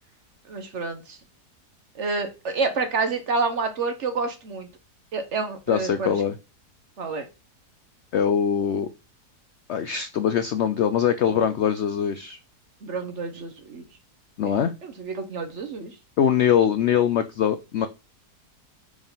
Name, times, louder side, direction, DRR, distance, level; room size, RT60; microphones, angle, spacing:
voice 1, 0.5-1.2 1.9-4.7 5.1-6.1 7.0-7.3 11.3-11.5 12.8-13.8 14.4-14.5 14.8-15.9, right 4 dB, 55° right, 7 dB, 1.1 m, -29 dB
voice 2, 5.7-6.4 8.1-8.9 9.7-12.4 14.4-14.7 16.2-17.9, left 8 dB, 75° left, 10 dB, 0.6 m, -22 dB
4.8 x 3.7 x 5.4 m, 0.28 s
omnidirectional pair, 1.7 m